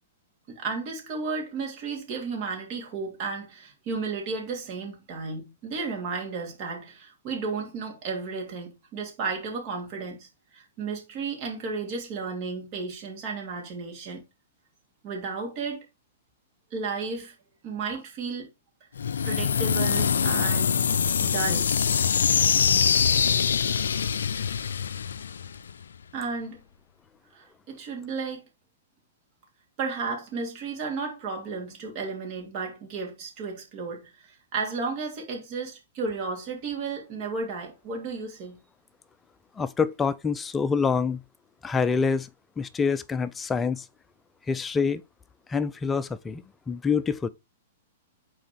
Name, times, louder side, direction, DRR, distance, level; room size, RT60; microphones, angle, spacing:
voice 1, 0.5-14.2 15.0-15.8 16.7-17.3 17.6-18.5 19.2-20.9 21.2-21.7 26.1-26.6 27.3-28.4 29.8-38.6, right 4 dB, 40° right, 2.8 m, -33 dB
sound 1, 19.0-25.8, left 7 dB, 75° left, 0.4 m, -24 dB
voice 2, 39.6-41.2 41.6-42.3 42.6-43.9 44.5-45.0 45.5-47.3, left 5 dB, 15° left, 0.5 m, -26 dB
6.3 x 4.2 x 4.5 m
hypercardioid pair, 110°, 0 cm